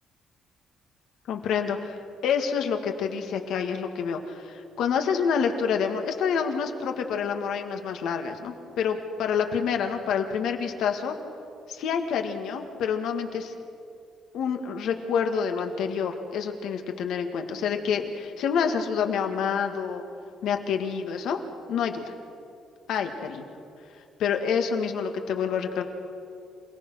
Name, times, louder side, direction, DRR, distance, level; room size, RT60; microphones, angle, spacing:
voice 1, 1.3-2.0 2.2-11.2 11.7-13.5 14.3-20.0 20.4-21.4 21.7-22.1 22.9-23.5 24.2-25.8, left 6 dB, 75° left, 5 dB, 2.0 m, -27 dB
27.5 x 18.0 x 6.5 m, 2.5 s
cardioid pair, 130°, 0 cm